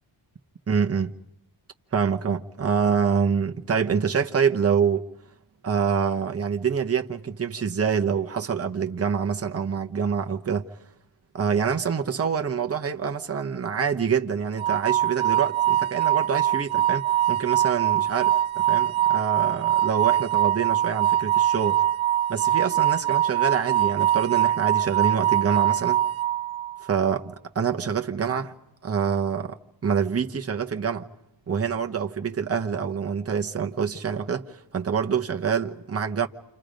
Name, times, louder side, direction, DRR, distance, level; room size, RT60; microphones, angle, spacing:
voice 1, 0.7-1.1 1.9-5.1 5.6-10.7 11.3-21.8 22.3-26.0 26.9-28.5 28.8-29.6 29.8-31.1 31.5-36.3, right 6 dB, 30° right, 1.0 m, -26 dB
sound 1, 14.6-26.8, right 12 dB, 75° right, 0.8 m, -23 dB
29.5 x 28.0 x 5.2 m
wide cardioid pair, 170°, 47 cm